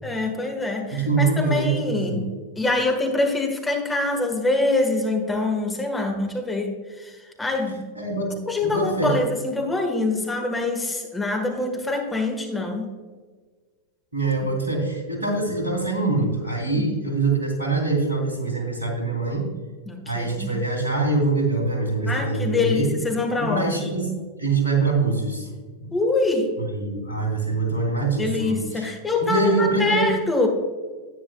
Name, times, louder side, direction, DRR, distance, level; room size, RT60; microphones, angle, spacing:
voice 1, 0.0-2.3 2.6-7.9 8.5-12.9 16.7-16.9 19.9-20.5 22.1-23.7 25.9-26.5 28.2-30.5, left 2 dB, 10° left, 3 dB, 1.5 m, -25 dB
voice 2, 0.9-2.3 7.9-8.4 8.6-9.2 14.1-19.5 20.0-22.9 23.4-24.1 24.4-25.5 25.8-25.9 26.6-28.9 29.2-30.1, right 3 dB, 80° right, 0 dB, 2.8 m, -24 dB
10.5 x 9.6 x 2.3 m, 1.4 s
figure-of-eight pair, 90°, 0 cm